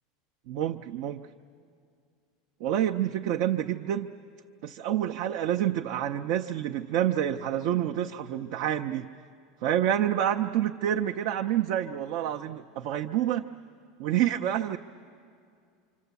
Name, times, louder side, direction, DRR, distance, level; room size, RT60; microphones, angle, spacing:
voice 1, 0.5-1.3 2.6-4.1 4.6-9.1 9.6-13.4 14.0-14.8, right 11 dB, 55° right, 5 dB, 0.6 m, -28 dB
26.5 x 25.5 x 8.2 m, 2.3 s
supercardioid pair, 170°, 0 cm